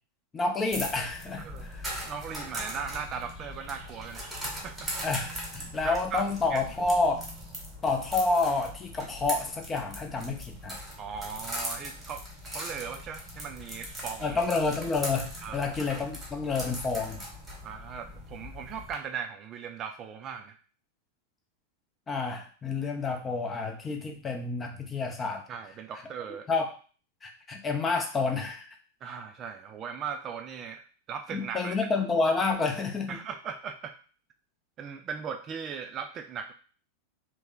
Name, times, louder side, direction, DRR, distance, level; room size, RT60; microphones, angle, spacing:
voice 1, 0.3-2.0 5.0-7.2 7.8-10.8 14.2-17.2 22.1-25.4 26.5-26.7 27.2-28.7 31.3-33.2, left 3 dB, 20° left, 4 dB, 0.6 m, -29 dB
sound 1, 0.7-18.9, equal, 10° right, 1.2 m, -40 dB
voice 2, 1.4-1.7 2.0-4.3 4.6-4.9 5.6-6.2 6.5-6.9 11.0-12.2 12.5-14.4 15.4-15.7 17.6-20.6 25.5-26.5 29.0-31.9 33.1-34.0 34.8-36.5, right 7 dB, 30° right, 5 dB, 0.3 m, -38 dB
3.0 x 2.2 x 3.7 m, 0.40 s
figure-of-eight pair, 90°, 0 cm